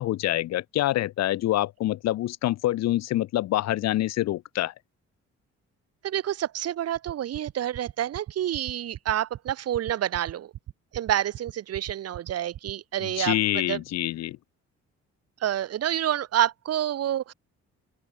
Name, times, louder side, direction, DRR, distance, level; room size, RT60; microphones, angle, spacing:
voice 1, 0.0-4.7 13.0-14.4, left 14 dB, 60° left, 0.5 m, -26 dB
voice 2, 6.0-10.5 10.9-13.4 13.7-13.8 15.4-17.3, right 11 dB, 55° right, 0.7 m, -28 dB
sound 1, 7.0-12.9, right 12 dB, 70° right, 1.6 m, -38 dB
open air
cardioid pair, 90°, 30 cm